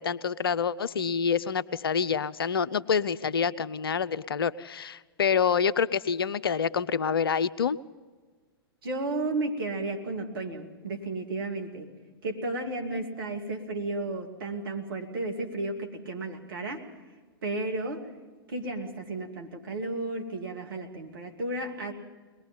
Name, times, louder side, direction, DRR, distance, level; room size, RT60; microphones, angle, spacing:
voice 1, 0.0-7.8, left 6 dB, 70° left, 16 dB, 0.6 m, -27 dB
voice 2, 8.8-11.9 12.2-16.8 17.4-18.1 18.5-21.9, right 2 dB, 65° right, 2 dB, 2.8 m, -33 dB
22.5 x 20.5 x 5.6 m, 1.4 s
figure-of-eight pair, 100°, 13 cm